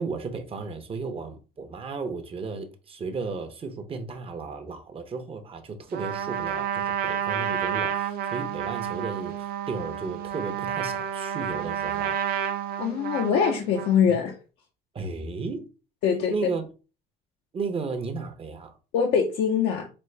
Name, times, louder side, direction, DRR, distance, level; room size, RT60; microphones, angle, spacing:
voice 1, 0.0-12.2 14.1-14.2 14.9-15.7 16.3-16.7 17.5-18.8, right 4 dB, 35° right, 0.8 m, -34 dB
Trumpet, 5.9-14.0, right 9 dB, 65° right, 0.7 m, -30 dB
voice 2, 12.8-14.3 16.0-16.3 18.9-19.9, left 7 dB, 80° left, 0.7 m, -23 dB
5.1 x 2.1 x 3.2 m
cardioid pair, 110°, 17 cm